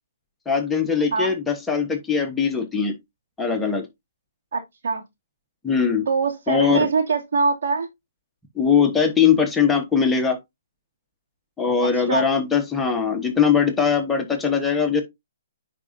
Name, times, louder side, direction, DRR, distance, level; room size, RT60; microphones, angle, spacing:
voice 1, 0.5-3.0 3.4-3.9 5.6-6.0 6.5-6.9 8.6-10.4 11.6-15.0, left 6 dB, 5° left, 1.3 m, -21 dB
voice 2, 4.5-5.0 6.1-7.9 11.9-12.2, right 4 dB, 65° right, 2.7 m, -23 dB
9.7 x 4.8 x 2.7 m
hypercardioid pair, 140°, 0 cm